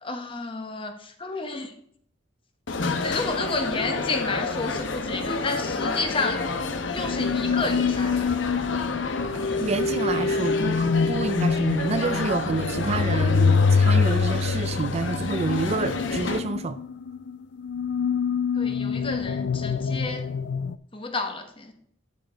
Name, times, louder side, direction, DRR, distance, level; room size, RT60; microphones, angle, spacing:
voice 1, 0.0-1.7 3.0-6.5 6.9-8.3 18.5-20.3 20.9-21.7, left 3 dB, 30° left, 1.2 m, -31 dB
sound 1, 2.7-16.4, left 3 dB, 80° left, 0.9 m, -30 dB
sound 2, 6.0-6.1 6.5-6.6 7.0-7.2 7.6-7.8 8.2-8.4 8.8-8.9 9.3-9.5 9.9-10.0 10.4-11.2 11.5-11.7 12.0-12.2 12.6-12.8 13.2-13.3 13.7-13.9 14.3-14.5 14.8-14.9 15.1-15.3, equal, 5° left, 2.0 m, -49 dB
sound 3, 7.0-20.8, left 5 dB, 60° left, 0.4 m, -25 dB
voice 2, 9.6-16.8, right 3 dB, 35° right, 0.4 m, -28 dB
10.5 x 4.7 x 5.1 m
head